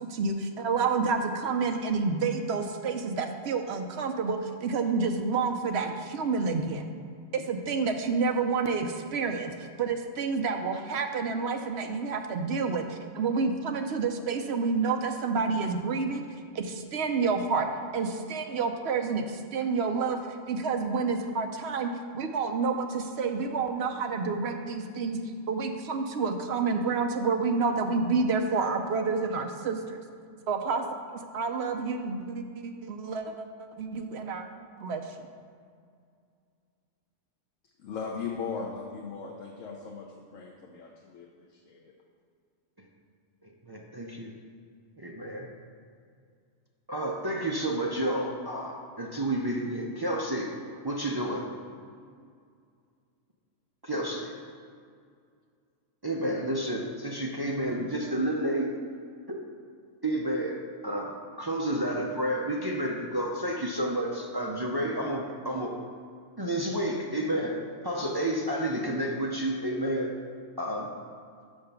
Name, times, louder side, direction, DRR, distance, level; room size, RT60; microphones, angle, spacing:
voice 1, 0.1-6.8 7.3-16.2 16.5-17.7 17.9-20.2 20.5-25.2 25.5-30.0 30.5-30.8 31.1-34.4 34.8-35.1, right 4 dB, 60° right, 5 dB, 0.8 m, -29 dB
voice 2, 37.8-40.1 40.3-41.8, left 5 dB, 75° left, -2 dB, 1.1 m, -38 dB
voice 3, 43.7-44.3 45.0-45.5 46.9-50.5 50.8-51.5 53.8-54.3 56.0-58.7 59.3-59.4 60.0-65.8 66.4-70.1 70.6-70.9, right 1 dB, 35° right, -1 dB, 0.4 m, -30 dB
5.7 x 5.7 x 6.7 m, 2.2 s
omnidirectional pair, 1.4 m